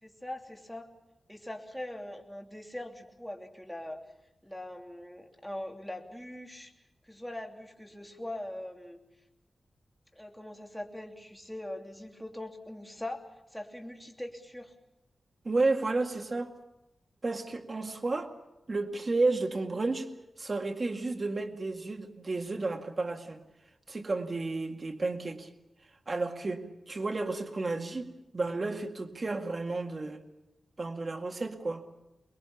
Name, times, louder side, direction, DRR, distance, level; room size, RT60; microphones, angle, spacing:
voice 1, 0.0-0.9 1.3-4.0 4.4-6.7 7.0-9.0 10.1-13.2 13.5-14.7, left 1 dB, 5° left, 2 dB, 3.0 m, -41 dB
voice 2, 15.4-16.5 17.2-18.3 18.7-20.1 20.4-23.4 23.9-25.5 26.1-30.2 30.8-31.8, right 3 dB, 40° right, 5 dB, 2.0 m, -32 dB
24.5 x 21.5 x 7.1 m, 0.95 s
wide cardioid pair, 85°, 0 cm